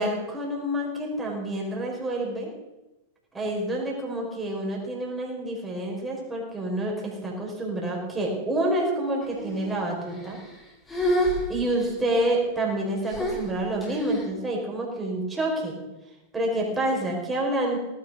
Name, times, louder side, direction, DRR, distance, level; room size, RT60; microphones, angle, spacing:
voice 1, 0.0-2.5 3.3-10.4 11.5-15.8 16.3-17.8, right 1 dB, 10° right, -2 dB, 5.2 m, -28 dB
sound 1, 9.2-9.8 10.1-10.6 10.9-12.1 13.1-14.2, equal, 10° left, 4.7 m, -29 dB
18.0 x 10.5 x 6.4 m, 1.0 s
figure-of-eight pair, 95°, 0 cm